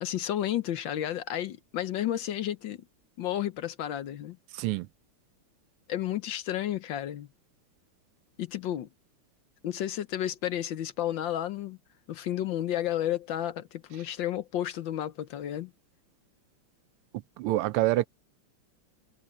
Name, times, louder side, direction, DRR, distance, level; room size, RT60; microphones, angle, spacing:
voice 1, 0.0-2.8 3.2-4.4 5.9-7.3 8.4-8.9 9.6-11.8 12.1-15.7, left 12 dB, 65° left, 1.4 m, -32 dB
voice 2, 4.5-4.9 17.4-18.1, right 16 dB, 85° right, 1.5 m, -26 dB
omnidirectional pair, 2.4 m